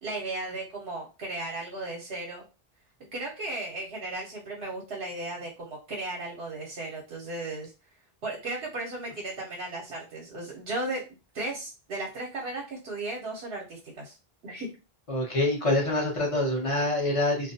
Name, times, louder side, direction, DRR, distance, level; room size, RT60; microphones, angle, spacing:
voice 1, 0.0-2.4 3.1-7.7 8.2-11.0 11.3-14.2 14.4-14.7, right 2 dB, 75° right, -2 dB, 0.9 m, -35 dB
voice 2, 15.1-17.5, left 1 dB, 35° left, -1 dB, 0.8 m, -26 dB
2.4 x 2.1 x 2.6 m, 0.30 s
omnidirectional pair, 1.0 m